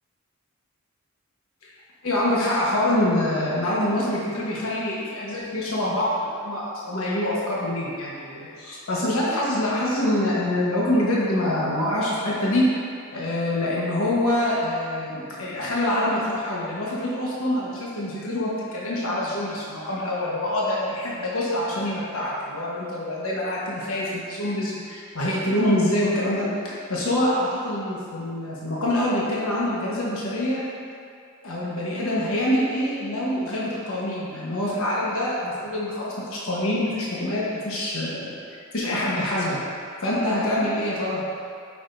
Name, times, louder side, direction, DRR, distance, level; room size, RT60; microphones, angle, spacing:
voice 1, 2.0-12.7 13.1-30.6 31.4-38.3 38.7-39.6 40.0-41.4, left 1 dB, 75° left, -6 dB, 1.2 m, -25 dB
8.7 x 5.8 x 2.6 m, 2.4 s
head